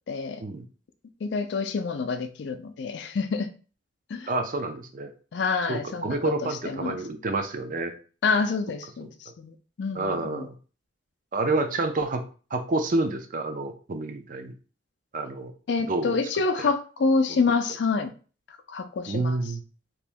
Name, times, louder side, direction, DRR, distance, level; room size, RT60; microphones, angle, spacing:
voice 1, 0.1-0.4 1.2-3.5 4.1-4.3 5.3-7.0 8.2-10.5 15.7-18.1 18.7-19.4, left 4 dB, 60° left, 9 dB, 0.4 m, -27 dB
voice 2, 4.3-5.1 5.7-7.9 10.0-10.5 11.3-12.2 12.5-14.5 15.1-15.5 15.8-16.2 16.6-16.7 17.3-17.4 19.1-19.6, right 2 dB, 40° right, 6 dB, 0.4 m, -28 dB
2.9 x 2.6 x 3.4 m, 0.38 s
head